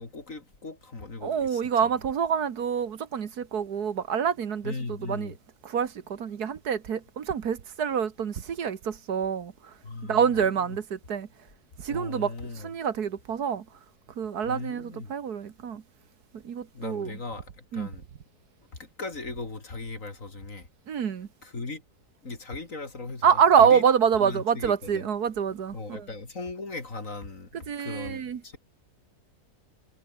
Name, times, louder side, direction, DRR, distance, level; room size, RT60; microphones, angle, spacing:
voice 1, 0.0-1.9 4.6-5.3 9.8-10.8 11.9-12.7 14.5-15.1 16.7-18.1 18.8-20.7 21.4-21.8 22.2-23.8 24.2-25.0 25.7-28.6, left 3 dB, 50° left, 3.7 m, -38 dB
voice 2, 1.2-5.3 5.6-9.5 10.0-11.3 11.8-13.6 14.2-15.8 16.4-17.2 17.7-17.9 20.9-21.3 23.2-26.1 27.7-28.6, right 7 dB, 70° right, 1.9 m, -26 dB
omnidirectional pair, 1.7 m